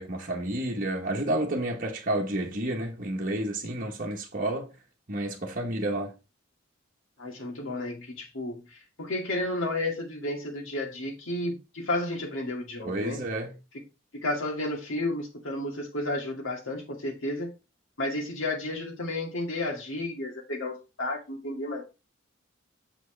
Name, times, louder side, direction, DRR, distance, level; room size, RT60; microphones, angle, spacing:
voice 1, 0.0-4.7 5.1-6.1 12.8-13.5, right 1 dB, 45° right, 1.1 m, -30 dB
voice 2, 7.2-13.2 14.1-17.5 18.0-21.8, left 1 dB, 85° left, 2.2 m, -32 dB
6.2 x 6.0 x 3.3 m
head